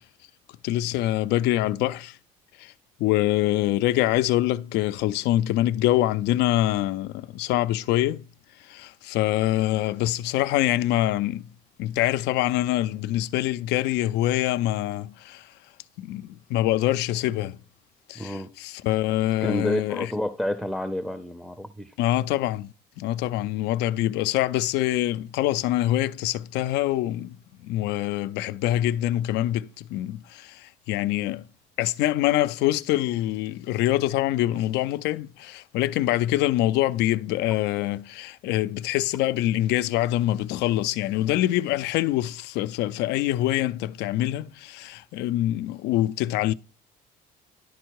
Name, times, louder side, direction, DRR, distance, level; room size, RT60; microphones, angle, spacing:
voice 1, 0.6-2.2 2.6-2.7 3.0-8.2 8.6-11.5 11.8-15.5 16.0-17.6 18.1-20.1 22.0-22.7 23.0-31.5 31.8-46.5, left 14 dB, 85° left, 0.4 m, -25 dB
voice 2, 18.2-18.5 19.4-21.9, left 1 dB, ahead, 0.5 m, -29 dB
11.0 x 4.4 x 4.6 m
cardioid pair, 110°, 17 cm